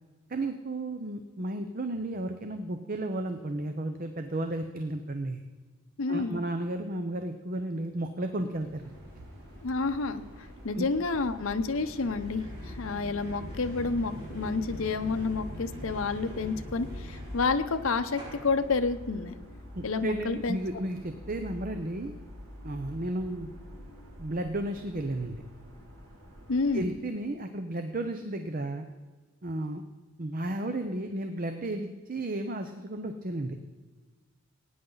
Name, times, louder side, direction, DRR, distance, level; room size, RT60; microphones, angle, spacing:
voice 1, 0.3-5.4 6.1-8.8 10.7-10.9 19.7-22.1 22.6-23.5 24.2-25.4 26.7-28.9 29.4-29.8 30.2-33.6, right 1 dB, 40° right, 7 dB, 0.7 m, -33 dB
voice 2, 6.0-6.4 9.6-10.2 10.6-12.4 12.8-19.4 19.8-20.6 26.5-26.9, left 4 dB, 70° left, 9 dB, 0.8 m, -29 dB
sound 1, 8.5-18.7, equal, 25° right, 4.8 m, -43 dB
sound 2, 8.8-26.9, equal, 85° right, 3.0 m, -48 dB
18.5 x 9.5 x 3.9 m, 1.4 s
head